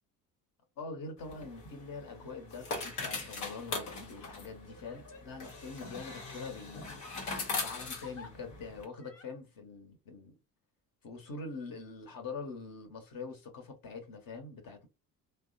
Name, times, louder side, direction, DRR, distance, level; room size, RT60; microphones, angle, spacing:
voice 1, 0.8-7.0 7.6-10.4 11.0-14.9, left 4 dB, 45° left, 1.2 m, -44 dB
sound 1, 1.2-8.9, left 3 dB, 75° left, 1.1 m, -41 dB
Crying sobbing, 2.1-2.4 3.0-3.1 4.1-6.3 7.5-8.3 9.0-9.3, left 3 dB, 30° left, 1.0 m, -55 dB
3.3 x 2.2 x 2.6 m
hypercardioid pair, 50°, 45 cm